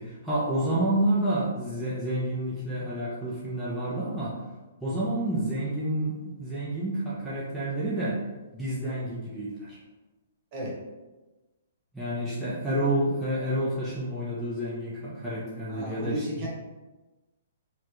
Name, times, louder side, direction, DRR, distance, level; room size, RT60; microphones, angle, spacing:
voice 1, 0.0-4.4 4.8-8.2 8.5-9.8 11.9-16.3, right 1 dB, ahead, -11 dB, 0.8 m, -29 dB
voice 2, 15.7-16.5, equal, 35° right, -4 dB, 1.4 m, -34 dB
4.4 x 2.5 x 3.0 m, 1.1 s
figure-of-eight pair, 120°, 0 cm